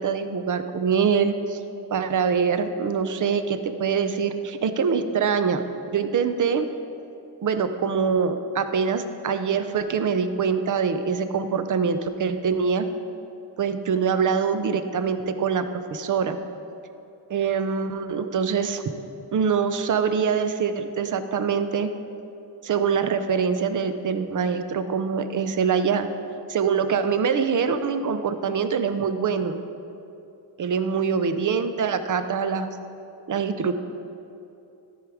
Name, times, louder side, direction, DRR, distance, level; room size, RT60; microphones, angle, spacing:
voice 1, 0.0-1.6 1.9-5.6 5.9-6.7 7.4-12.9 13.6-15.6 15.9-16.4 17.3-18.8 19.3-21.9 22.6-26.1 26.5-29.6 30.6-32.7 33.3-33.7, right 6 dB, 45° right, 9 dB, 0.6 m, -24 dB
13.0 x 4.8 x 4.9 m, 2.8 s
wide cardioid pair, 100°, 44 cm